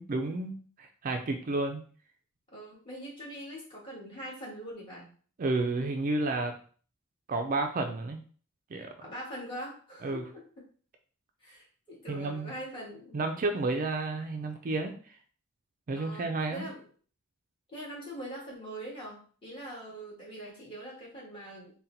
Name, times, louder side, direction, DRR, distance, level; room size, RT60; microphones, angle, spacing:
voice 1, 0.0-1.8 5.4-6.6 7.3-8.2 8.7-8.9 10.0-10.2 12.1-12.5 13.1-14.9 15.9-16.7, right 2 dB, 40° right, 5 dB, 0.4 m, -31 dB
voice 2, 2.5-5.1 9.0-10.6 11.4-13.2 15.9-16.8 17.7-21.7, right 1 dB, 25° left, -5 dB, 1.7 m, -43 dB
4.1 x 2.2 x 3.9 m, 0.42 s
head